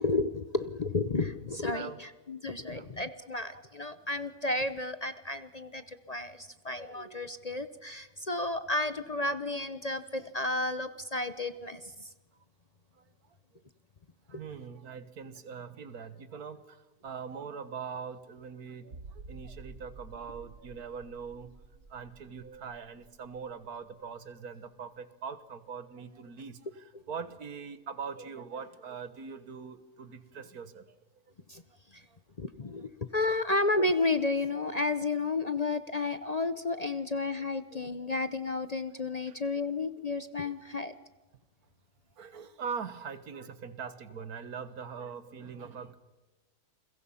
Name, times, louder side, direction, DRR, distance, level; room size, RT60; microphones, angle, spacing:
voice 1, 0.0-12.1 14.3-14.4 26.9-27.0 31.5-31.6 31.9-32.0 32.4-40.9, left 3 dB, 35° left, 12 dB, 0.7 m, -32 dB
voice 2, 2.6-2.9 3.5-3.6 6.3-6.4 7.5-7.6 13.0-13.1 13.5-13.6 14.3-31.0 32.1-32.2 32.8-32.9 37.7-37.8 39.3-39.4 40.4-40.5 42.2-46.0, right 6 dB, 85° right, 13 dB, 1.8 m, -42 dB
sound 1, 18.9-24.3 24.6-24.7 25.3-25.4, right 3 dB, 70° right, 2.3 m, -51 dB
29.5 x 22.0 x 5.7 m, 1.2 s
omnidirectional pair, 1.5 m